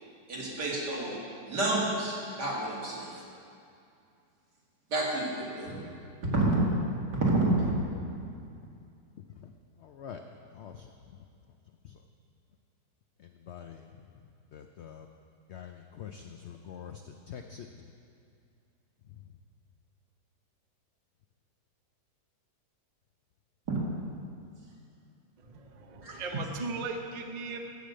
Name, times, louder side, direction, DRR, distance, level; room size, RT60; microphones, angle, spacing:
voice 1, 0.3-1.2 1.5-3.1 4.9-5.8 6.2-6.7 7.1-7.7 23.7-23.8 26.0-26.1, right 2 dB, 75° right, -5 dB, 2.8 m, -29 dB
voice 2, 9.8-10.2 10.5-11.2 11.8-12.0 13.2-14.1 14.5-15.1 15.5-17.9, left 8 dB, 80° left, 5 dB, 0.6 m, -46 dB
voice 3, 25.4-27.6, right 3 dB, 40° right, 3 dB, 0.6 m, -37 dB
13.5 x 5.1 x 7.7 m, 2.5 s
omnidirectional pair, 1.8 m